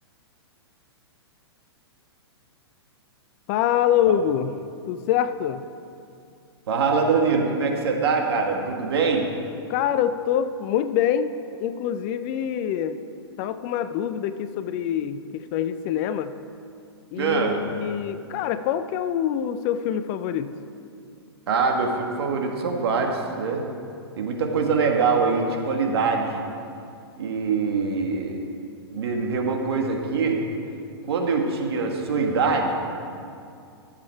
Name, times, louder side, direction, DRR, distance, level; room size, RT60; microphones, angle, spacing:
voice 1, 3.5-4.5 4.9-5.6 9.7-11.3 11.6-13.0 13.4-16.3 17.1-20.6, left 9 dB, 35° left, 11 dB, 0.5 m, -25 dB
voice 2, 6.7-9.3 17.2-17.6 21.5-23.6 24.2-26.3 27.2-28.3 28.9-30.4 31.1-32.7, right 4 dB, 65° right, 1 dB, 1.8 m, -23 dB
14.5 x 7.5 x 4.5 m, 2.4 s
hypercardioid pair, 120°, 14 cm